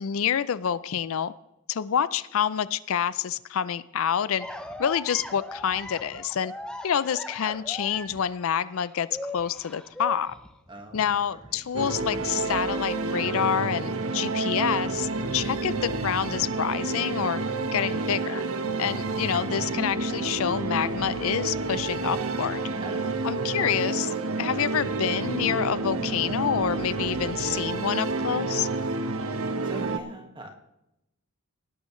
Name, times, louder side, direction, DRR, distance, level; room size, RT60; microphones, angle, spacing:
voice 1, 0.0-1.3 1.7-4.5 4.8-6.5 6.8-9.1 9.3-10.4 10.9-17.4 17.7-18.4 18.8-22.6 23.2-28.7, left 8 dB, 65° left, 17 dB, 0.4 m, -27 dB
sound 1, 4.4-13.2 13.5-14.8, left 1 dB, 5° left, 0.8 m, -41 dB
voice 2, 10.7-11.1 11.3-11.6 19.5-19.7 22.8-23.0 29.6-30.5, right 1 dB, 20° right, 4 dB, 1.6 m, -41 dB
sound 2, 11.7-30.0, right 3 dB, 70° right, 0.9 m, -29 dB
18.0 x 12.0 x 3.1 m, 0.87 s
head